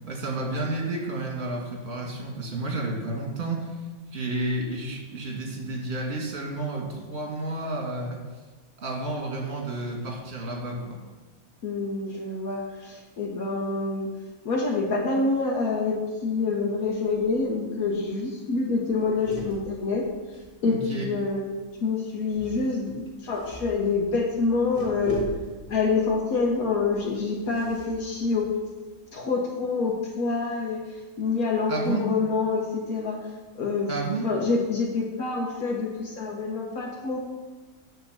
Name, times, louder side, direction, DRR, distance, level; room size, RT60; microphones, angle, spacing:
voice 1, 0.0-3.7 4.1-8.2 8.8-11.0 20.6-21.1 31.7-32.1 33.9-34.3, right 2 dB, 45° right, -1 dB, 1.9 m, -31 dB
voice 2, 11.6-14.1 14.4-20.1 20.6-21.4 21.8-25.2 25.7-28.5 29.1-33.2 33.5-33.9 34.2-37.2, left 4 dB, 80° left, -1 dB, 1.5 m, -26 dB
sound 1, 17.1-17.5 17.8-17.9 18.2-18.4 18.8-21.1 22.2-29.1, left 1 dB, 25° left, 1.8 m, -41 dB
9.7 x 3.7 x 6.7 m, 1.2 s
omnidirectional pair, 1.5 m